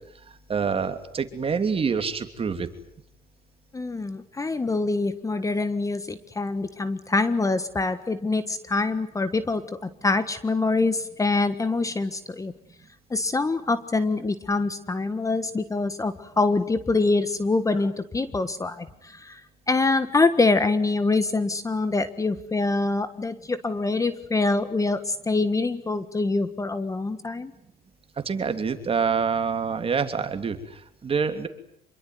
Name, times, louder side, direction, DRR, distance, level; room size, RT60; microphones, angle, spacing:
voice 1, 0.3-2.7 28.2-31.5, right 6 dB, 35° right, 8 dB, 3.0 m, -26 dB
voice 2, 3.7-12.5 13.1-19.4 19.7-27.5, left 3 dB, 20° left, 13 dB, 1.5 m, -25 dB
27.0 x 22.5 x 9.6 m, 0.69 s
cardioid pair, 110°, 17 cm